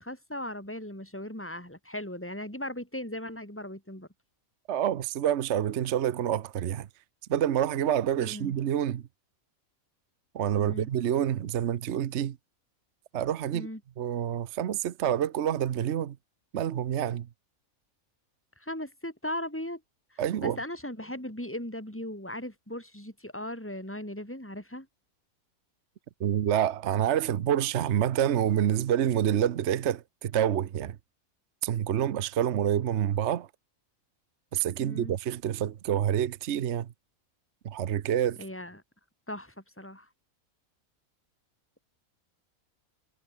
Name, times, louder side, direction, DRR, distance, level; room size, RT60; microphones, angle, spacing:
voice 1, 0.0-4.1 8.2-8.5 10.6-10.9 13.5-13.8 18.6-19.8 20.1-24.9 34.8-35.1 38.4-38.8 39.3-40.1, left 1 dB, 10° left, 6.8 m, -38 dB
voice 2, 4.7-6.9 7.3-9.0 10.3-12.4 13.1-13.7 14.0-16.2 16.5-17.3 20.2-20.6 26.2-31.0 31.6-33.5 34.5-36.9 37.6-38.4, right 10 dB, 55° right, 1.0 m, -27 dB
omnidirectional pair, 1.5 m